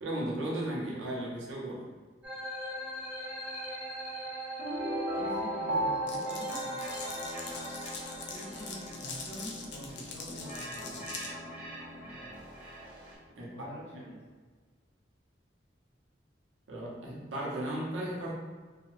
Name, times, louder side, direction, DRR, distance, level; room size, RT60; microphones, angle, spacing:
voice 1, 0.0-1.9 13.4-13.5 16.7-18.3, right 1 dB, 85° right, -4 dB, 0.7 m, -35 dB
sound 1, 2.2-13.1, right 1 dB, 10° right, 0.6 m, -40 dB
sound 2, 4.6-7.6, equal, 50° right, 0.6 m, -34 dB
voice 2, 5.1-7.1 8.3-11.1 13.4-14.2, equal, 35° left, -10 dB, 1.4 m, -46 dB
Glass, 6.1-11.3, left 4 dB, 65° left, 0.4 m, -43 dB
2.6 x 2.3 x 2.9 m, 1.5 s
head